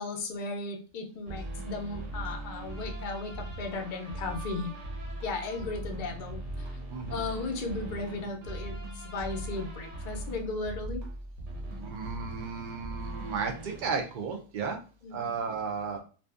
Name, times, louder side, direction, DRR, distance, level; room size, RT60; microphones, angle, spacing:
voice 1, 0.0-4.8 5.2-11.0 15.0-15.4, left 3 dB, 60° left, 3 dB, 0.5 m, -36 dB
sound 1, 1.3-14.0, right 1 dB, 65° right, 0.9 m, -40 dB
voice 2, 6.9-7.2 11.8-14.8 15.1-16.0, right 5 dB, 80° right, 3 dB, 0.4 m, -34 dB
2.6 x 2.4 x 2.3 m, 0.36 s
omnidirectional pair, 1.4 m